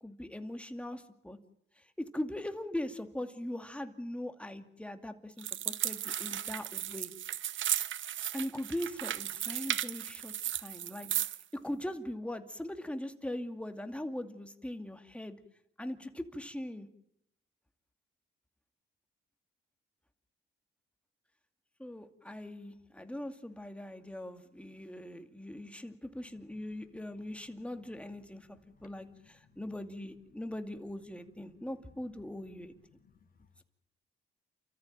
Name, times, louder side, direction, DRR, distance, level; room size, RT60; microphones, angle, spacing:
voice 1, 0.0-1.4 2.0-7.1 8.3-11.3 11.6-15.4 15.8-16.9 21.8-32.7, left 1 dB, 5° left, 7 dB, 2.5 m, -41 dB
sound 1, 5.4-11.4, right 11 dB, 65° right, 0.9 m, -35 dB
voice 2, 26.6-26.9 27.5-27.7 28.1-29.6 30.0-30.4 31.2-31.7 32.4-33.6, left 6 dB, 45° left, 6 dB, 3.6 m, -66 dB
29.5 x 14.0 x 9.0 m, 0.78 s
cardioid pair, 80°, 21 cm